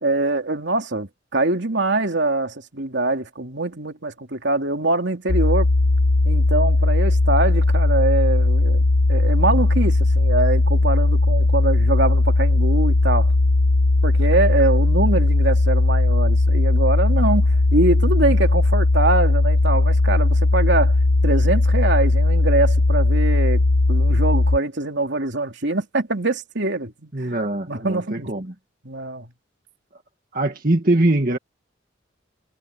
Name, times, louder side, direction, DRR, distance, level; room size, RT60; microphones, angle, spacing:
voice 1, 0.0-5.7 6.2-8.8 9.1-13.3 14.0-20.9 21.2-23.6 23.9-27.3 27.7-28.3 28.8-29.3, right 2 dB, 65° right, 2.9 m, -23 dB
sound 1, 5.3-24.6, left 2 dB, 70° left, 0.9 m, -18 dB
voice 2, 27.1-28.5 30.3-31.4, right 1 dB, 45° right, 2.0 m, -22 dB
head